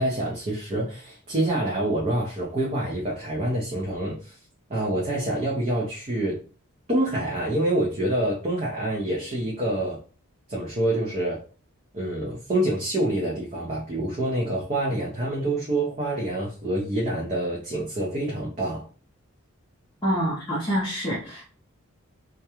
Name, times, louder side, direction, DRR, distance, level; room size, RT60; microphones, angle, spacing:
voice 1, 0.0-4.3 4.7-6.4 6.9-10.0 10.5-11.4 11.9-18.8, right 1 dB, 30° right, 0.5 m, -26 dB
voice 2, 20.0-21.5, equal, 20° left, 0.5 m, -26 dB
2.3 x 2.1 x 2.9 m
head